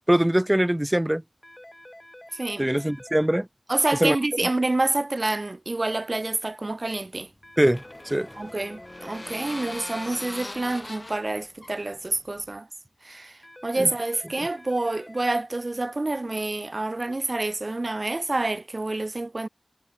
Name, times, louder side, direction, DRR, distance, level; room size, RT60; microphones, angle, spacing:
voice 1, 0.1-1.2 2.6-3.5 4.0-4.2 7.6-8.3 13.8-13.9, right 1 dB, 15° right, 0.4 m, -22 dB
sound 1, 1.4-3.3 7.4-9.3 13.4-15.3, left 1 dB, 20° left, 6.6 m, -47 dB
voice 2, 2.3-2.7 3.7-7.3 8.4-12.7 13.0-19.5, right 2 dB, 60° right, 0.8 m, -28 dB
sound 2, 7.0-12.6, left 1 dB, 40° left, 1.8 m, -41 dB
wide cardioid pair, 45°, 0 cm